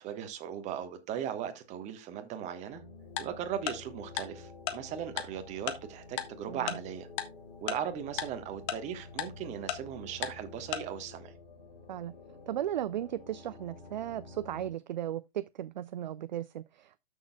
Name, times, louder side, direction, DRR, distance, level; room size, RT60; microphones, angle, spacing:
voice 1, 0.0-2.8 3.2-7.1 7.6-11.3, right 9 dB, 20° right, 1.3 m, -38 dB
sound 1, 2.7-14.7, left 3 dB, 50° left, 3.3 m, -50 dB
Tick-tock, 3.2-3.3 3.7-3.8 4.2-4.3 4.7-4.8 5.2-5.3 5.7-5.8 6.2-6.3 6.7-6.8 7.2-7.3 7.7-7.8 8.2-8.3 8.7-8.8 9.2-9.3 9.7-9.8 10.2-10.3 10.7-10.8, left 12 dB, 25° left, 1.0 m, -32 dB
voice 2, 6.5-6.8 11.9-12.1 12.5-17.0, right 11 dB, 45° right, 0.4 m, -36 dB
12.5 x 6.4 x 2.3 m
figure-of-eight pair, 115°, 31 cm